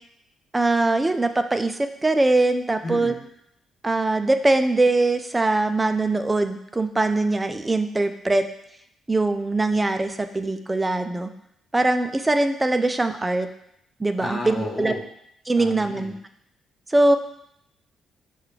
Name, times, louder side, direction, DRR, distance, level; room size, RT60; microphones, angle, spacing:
voice 1, 0.5-3.1 3.8-8.4 9.1-11.3 11.7-13.5 14.0-14.9 15.5-16.1 16.9-17.2, right 2 dB, 15° right, 8 dB, 0.4 m, -22 dB
voice 2, 2.8-3.2 14.2-15.0 15.6-16.2, left 2 dB, 35° left, -1 dB, 1.0 m, -32 dB
6.5 x 2.3 x 3.2 m, 0.75 s
cardioid pair, 90°, 0 cm